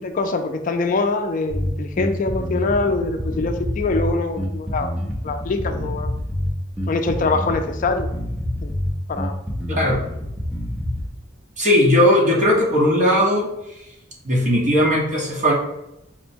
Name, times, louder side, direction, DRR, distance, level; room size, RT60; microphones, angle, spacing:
voice 1, 0.0-4.9 5.2-6.2 6.9-8.1 8.6-8.7 9.1-9.3, left 3 dB, 45° left, 7 dB, 0.4 m, -24 dB
Bass guitar, 1.5-11.1, equal, 10° right, 0.7 m, -27 dB
voice 2, 11.6-13.5 14.2-15.5, equal, 45° right, -3 dB, 1.1 m, -17 dB
4.4 x 2.2 x 4.3 m, 0.86 s
head